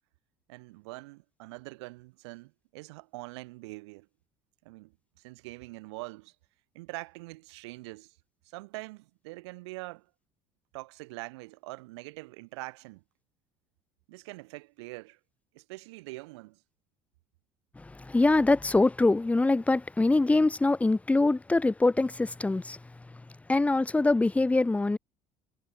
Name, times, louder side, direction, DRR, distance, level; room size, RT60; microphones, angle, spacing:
voice 1, 0.5-4.1 4.6-6.4 6.7-8.2 8.4-10.1 10.7-13.0 14.1-15.2 15.5-16.6, right 23 dB, 85° right, 2.4 m, -44 dB
voice 2, 17.8-22.8 23.5-25.0, left 2 dB, 10° left, 0.4 m, -24 dB
hypercardioid pair, 75°, 14 cm